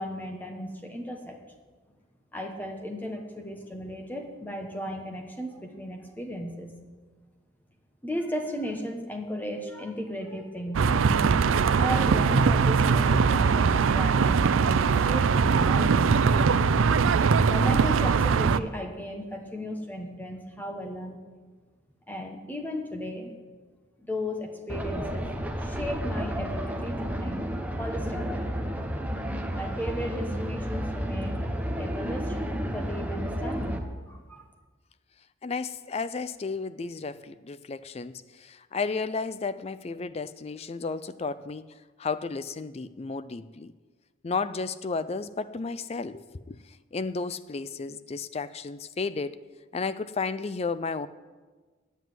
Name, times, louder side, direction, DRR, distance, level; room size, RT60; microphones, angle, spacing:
voice 1, 0.0-1.4 2.3-6.8 8.0-11.0 11.8-16.1 17.5-21.2 22.1-23.3 24.1-25.3 25.6-27.5 27.8-28.5 29.4-32.4 32.7-34.4, equal, 10° left, 3 dB, 1.1 m, -35 dB
sound 1, 10.7-18.6, right 5 dB, 85° right, 0.4 m, -21 dB
sound 2, 24.7-33.8, equal, 5° right, 0.8 m, -31 dB
voice 2, 35.4-41.7 42.0-43.7 44.2-46.6 46.9-49.4 49.7-51.1, left 4 dB, 30° left, 14 dB, 0.4 m, -33 dB
9.1 x 8.0 x 9.2 m, 1.4 s
head